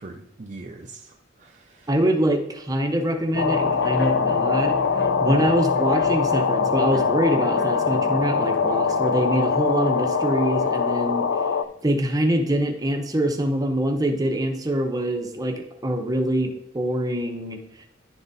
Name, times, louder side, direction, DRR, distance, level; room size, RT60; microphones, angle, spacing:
voice 1, 0.0-1.9 5.3-5.5, right 2 dB, 40° right, 3 dB, 0.5 m, -41 dB
voice 2, 1.9-4.8 5.2-11.2 11.8-17.9, right 1 dB, 20° right, 4 dB, 0.8 m, -24 dB
sound 1, 3.3-11.7, left 2 dB, 55° left, 0.8 m, -38 dB
sound 2, 3.4-11.6, left 5 dB, 80° left, 0.5 m, -23 dB
10.5 x 3.9 x 4.0 m, 0.78 s
head